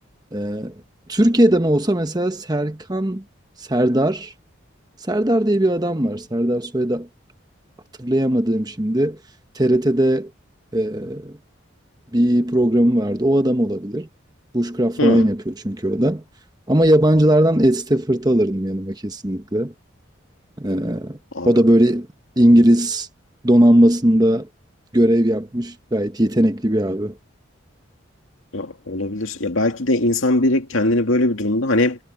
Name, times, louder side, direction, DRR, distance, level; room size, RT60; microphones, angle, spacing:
voice 1, 0.3-0.7 1.1-3.2 3.6-4.3 5.1-7.1 8.0-9.2 9.5-10.3 10.7-11.4 12.1-14.1 14.5-16.2 16.7-19.7 20.6-21.2 21.4-22.1 22.4-23.1 23.4-24.5 24.9-27.2, right 1 dB, 20° right, 1.2 m, -18 dB
voice 2, 28.5-32.0, left 2 dB, 80° left, 2.2 m, -20 dB
head